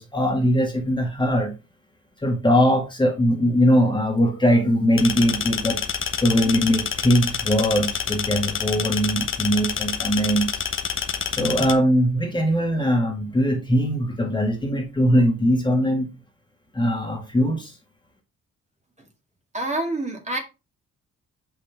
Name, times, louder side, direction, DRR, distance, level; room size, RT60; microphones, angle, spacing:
voice 1, 0.0-1.5 2.2-5.8 6.2-10.5 11.3-16.1 16.7-17.7, equal, 15° left, 1.8 m, -21 dB
sound 1, 5.0-11.7, left 7 dB, 40° left, 1.0 m, -28 dB
voice 2, 19.5-20.4, right 2 dB, 25° right, 2.2 m, -27 dB
6.5 x 5.7 x 3.5 m
cardioid pair, 90°, 30 cm